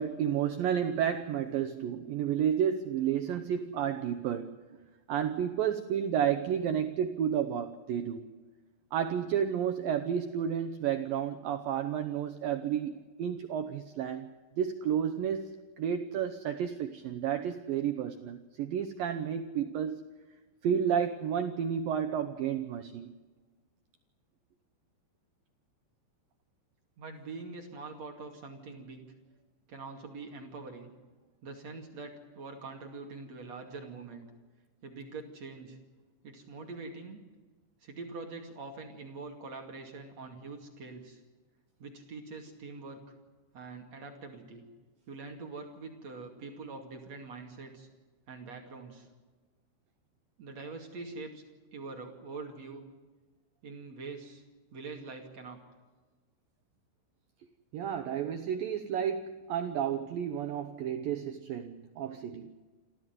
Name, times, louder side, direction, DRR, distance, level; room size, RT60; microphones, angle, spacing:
voice 1, 0.0-4.6 5.1-8.3 8.9-14.3 14.6-20.0 20.6-23.1 57.7-62.5, right 8 dB, 85° right, 8 dB, 2.0 m, -31 dB
voice 2, 27.0-29.0 29.7-30.9 31.4-34.3 34.8-35.8 36.2-37.2 37.8-41.2 41.8-43.1 43.5-44.7 45.1-47.9 48.3-49.1 50.4-51.4 51.7-52.8 53.6-54.4 54.7-55.6, right 3 dB, 45° right, 3 dB, 2.9 m, -44 dB
27.5 x 14.0 x 9.3 m, 1.3 s
omnidirectional pair, 5.5 m